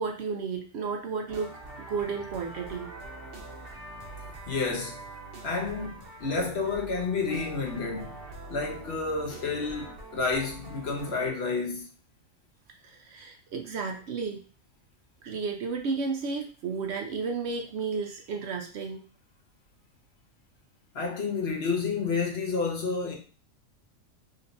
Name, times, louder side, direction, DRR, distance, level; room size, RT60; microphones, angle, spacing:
voice 1, 0.0-1.5 1.8-2.9 12.8-14.4 15.2-19.0, right 5 dB, 65° right, 0.8 m, -32 dB
sound 1, 1.3-11.3, right 2 dB, 50° right, 1.1 m, -44 dB
voice 2, 4.5-5.0 5.4-8.2 8.5-11.9 20.9-23.1, left 4 dB, 55° left, 1.0 m, -30 dB
3.9 x 3.3 x 2.6 m
omnidirectional pair, 1.4 m